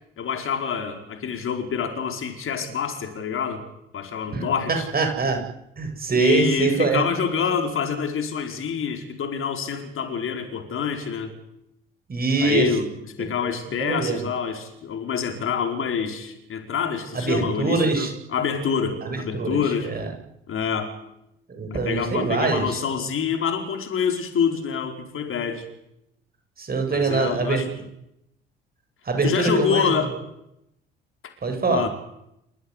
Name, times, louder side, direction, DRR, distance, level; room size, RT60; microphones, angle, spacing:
voice 1, 0.2-3.6 3.9-4.9 6.1-11.3 12.4-12.9 13.2-19.9 20.5-20.9 21.7-25.7 26.9-27.8 29.2-30.2 31.7-31.9, left 7 dB, 45° left, 5 dB, 4.9 m, -26 dB
voice 2, 4.3-5.4 5.8-7.1 12.1-12.7 13.4-13.5 13.8-14.2 17.1-18.1 19.0-19.6 19.8-20.1 21.5-22.8 26.6-27.6 29.0-30.0 31.4-31.8, right 4 dB, 30° right, 5 dB, 7.9 m, -23 dB
29.0 x 15.5 x 10.0 m, 0.83 s
figure-of-eight pair, 55°, 29 cm